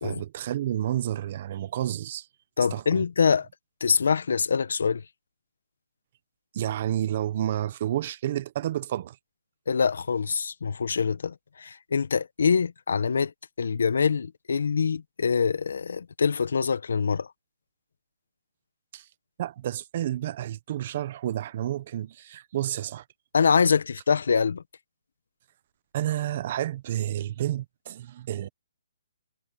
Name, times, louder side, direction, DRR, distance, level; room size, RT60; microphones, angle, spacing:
voice 1, 0.0-2.3 2.7-3.0 6.5-9.2 18.9-19.1 19.4-23.0 25.9-28.5, right 12 dB, 40° right, 1.0 m, -30 dB
voice 2, 2.6-3.5 3.8-5.0 9.7-13.3 13.6-17.3 23.3-24.6, left 6 dB, 70° left, 1.4 m, -24 dB
hypercardioid pair, 160°, 0 cm